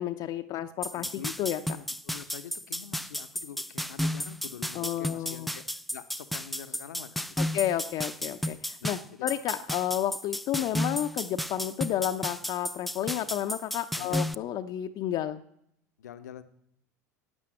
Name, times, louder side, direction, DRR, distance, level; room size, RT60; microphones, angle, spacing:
voice 1, 0.0-1.1 1.4-1.6 4.7-5.5 7.4-15.4, left 12 dB, 45° left, 7 dB, 0.7 m, -31 dB
sound 1, 0.8-14.3, equal, ahead, 0.5 m, -33 dB
voice 2, 0.9-5.7 5.9-7.5 8.2-8.3 8.8-9.3 10.5-10.7 13.9-14.3 16.0-16.4, left 10 dB, 75° left, 10 dB, 0.9 m, -45 dB
12.5 x 9.1 x 7.6 m, 0.75 s
hypercardioid pair, 80°, 9 cm